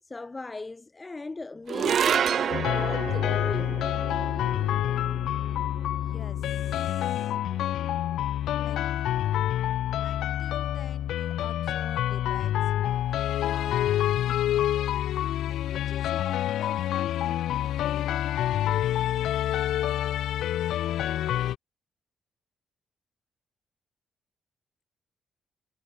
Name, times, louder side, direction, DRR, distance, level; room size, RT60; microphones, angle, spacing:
voice 1, 0.1-3.8, left 3 dB, 20° left, 2.3 m, -38 dB
sound 1, 1.7-8.2, right 8 dB, 60° right, 0.4 m, -31 dB
sound 2, 2.5-21.6, left 12 dB, 85° left, 1.8 m, -27 dB
voice 2, 5.9-7.4 8.5-8.8 10.0-15.1 15.6-18.2, left 6 dB, 40° left, 4.9 m, -48 dB
cardioid pair, 105°, 0 cm